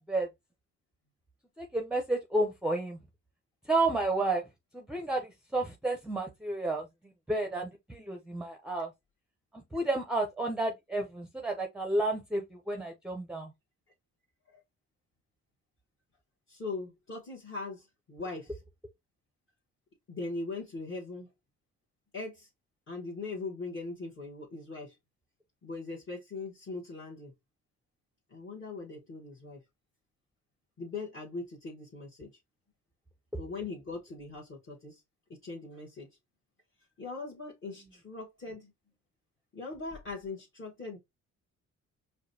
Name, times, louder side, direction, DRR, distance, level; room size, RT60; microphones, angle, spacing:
voice 1, 1.6-3.0 3.7-4.4 4.7-6.8 7.3-8.9 9.7-13.5, right 2 dB, 5° right, 0.6 m, -31 dB
voice 2, 16.5-18.6 20.1-21.3 22.1-22.5 22.9-24.9 25.6-27.3 28.3-29.6 30.8-32.3 33.4-35.0 35.4-36.1 37.0-38.7 39.5-41.0, left 3 dB, 45° left, 1.2 m, -40 dB
4.8 x 2.2 x 2.6 m
cardioid pair, 90°, 30 cm